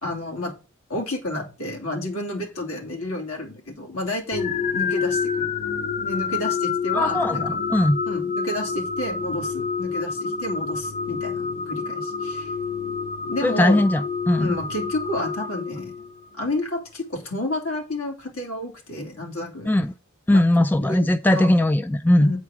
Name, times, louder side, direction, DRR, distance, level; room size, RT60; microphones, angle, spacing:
voice 1, 0.0-0.5 0.9-5.5 6.0-7.4 8.1-12.5 13.2-13.8 14.4-16.1 16.4-19.7 20.3-20.4 20.8-21.5 22.2-22.4, left 1 dB, 65° left, 2.9 m, -30 dB
sound 1, 4.3-16.3, left 5 dB, 35° left, 0.7 m, -28 dB
voice 2, 6.9-8.0 13.4-14.0 14.3-14.6 19.7-19.9 20.3-22.3, left 1 dB, 10° left, 0.3 m, -19 dB
8.3 x 4.7 x 6.0 m
head